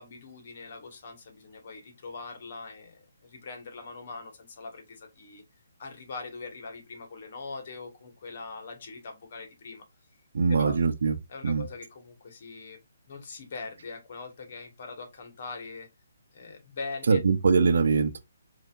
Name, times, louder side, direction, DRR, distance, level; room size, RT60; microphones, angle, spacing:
voice 1, 0.0-5.4 5.8-9.8 10.6-10.8 11.3-12.8 13.1-15.9 16.3-17.2, left 3 dB, 50° left, 1.5 m, -42 dB
voice 2, 10.3-11.2 11.4-11.7 17.1-18.2, right 5 dB, 70° right, 0.7 m, -22 dB
5.4 x 2.8 x 2.5 m
hypercardioid pair, 145°, 0 cm